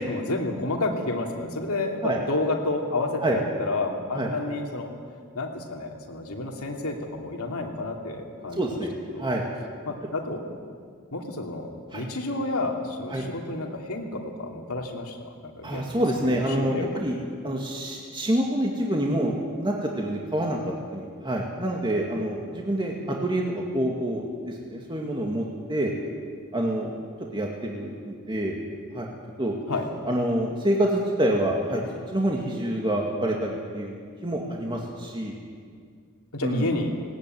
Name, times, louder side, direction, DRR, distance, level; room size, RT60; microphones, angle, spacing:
voice 1, 0.0-4.9 5.3-8.8 9.1-9.3 9.9-10.4 11.1-16.9 29.7-29.9 36.3-36.9, left 2 dB, 75° left, 1 dB, 2.9 m, -30 dB
voice 2, 8.6-8.9 9.2-9.4 11.9-12.0 13.1-13.2 15.6-17.2 17.4-25.9 26.5-27.0 27.3-28.6 28.9-29.1 29.4-29.5 30.1-31.8 32.1-35.4 36.4-36.7, right 1 dB, 20° right, -1 dB, 2.1 m, -27 dB
19.0 x 18.0 x 9.3 m, 2.1 s
head